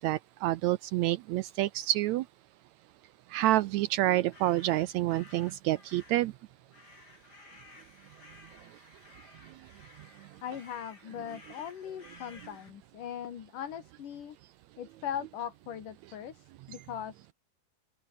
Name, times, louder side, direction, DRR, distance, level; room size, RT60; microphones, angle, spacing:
voice 1, 0.0-2.2 3.3-6.3, right 15 dB, 80° right, 1.6 m, -28 dB
Raven Army, 4.3-12.7, left 3 dB, 30° left, 5.0 m, -56 dB
voice 2, 10.4-14.4 14.8-17.3, left 9 dB, 75° left, 3.7 m, -40 dB
omnidirectional pair, 3.8 m